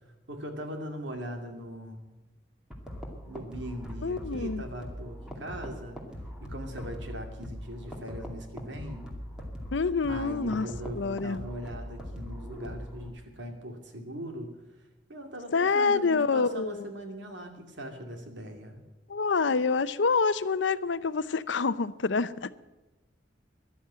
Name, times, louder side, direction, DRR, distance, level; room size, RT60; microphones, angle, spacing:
voice 1, 0.3-2.1 3.3-6.0 6.4-9.1 10.1-14.5 15.1-18.8, equal, 75° right, 4 dB, 2.5 m, -40 dB
sound 1, 2.7-13.1, equal, 5° right, 2.3 m, -41 dB
voice 2, 4.0-4.6 9.7-10.7 11.0-11.4 15.5-16.9 19.1-22.5, left 4 dB, 75° left, 15 dB, 0.6 m, -27 dB
14.0 x 11.5 x 7.6 m, 1.1 s
head